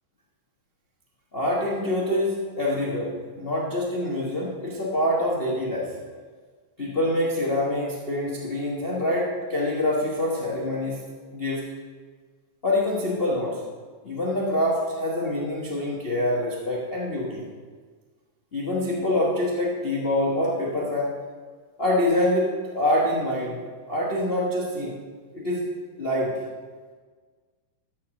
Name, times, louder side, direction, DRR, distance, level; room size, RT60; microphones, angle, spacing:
voice 1, 1.3-5.9 6.8-11.0 11.3-11.6 12.6-13.6 14.0-17.4 18.5-21.1 21.8-25.0 25.3-25.7 26.0-26.4, left 1 dB, 60° left, -5 dB, 0.6 m, -25 dB
12.5 x 4.8 x 6.3 m, 1.5 s
omnidirectional pair, 3.4 m